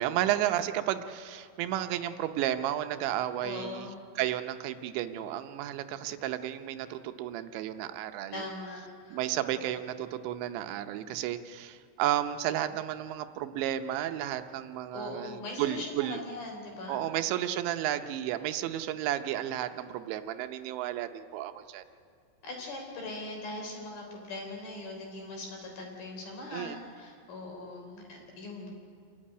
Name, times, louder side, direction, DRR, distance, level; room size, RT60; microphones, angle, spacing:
voice 1, 0.0-3.9 4.2-8.4 9.1-16.2 16.9-21.8 26.5-26.8, right 12 dB, 85° right, 9 dB, 3.1 m, -32 dB
voice 2, 3.4-4.0 8.3-9.2 9.5-9.9 14.9-17.1 22.4-28.7, left 2 dB, 55° left, 1 dB, 5.5 m, -41 dB
27.0 x 13.0 x 9.9 m, 2.1 s
omnidirectional pair, 5.2 m